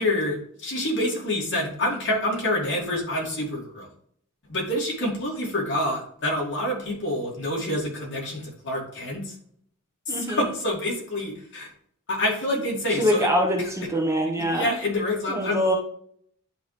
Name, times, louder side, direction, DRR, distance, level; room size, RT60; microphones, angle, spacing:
voice 1, 0.0-3.9 4.5-9.3 10.1-11.7 12.1-13.3 13.6-13.7 14.5-15.6, left 1 dB, 55° left, -3 dB, 2.6 m, -27 dB
voice 2, 10.1-10.5 12.9-14.7 15.3-15.7, equal, 15° right, -1 dB, 1.2 m, -24 dB
10.5 x 3.6 x 3.3 m, 0.65 s
head